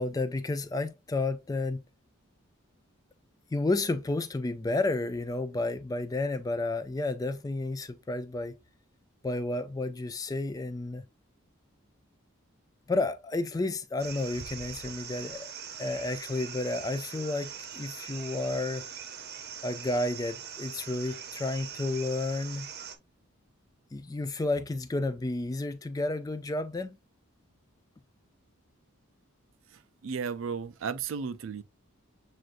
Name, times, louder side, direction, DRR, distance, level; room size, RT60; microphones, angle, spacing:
voice 1, 0.0-1.8 3.5-8.6 9.2-11.0 12.9-15.5 15.8-18.8 19.6-22.7 23.9-27.0, left 2 dB, 15° left, 0.3 m, -31 dB
sound 1, 14.0-23.0, right 7 dB, 50° right, 0.8 m, -42 dB
voice 2, 30.0-31.6, right 6 dB, 65° right, 0.4 m, -34 dB
7.5 x 2.5 x 2.5 m
head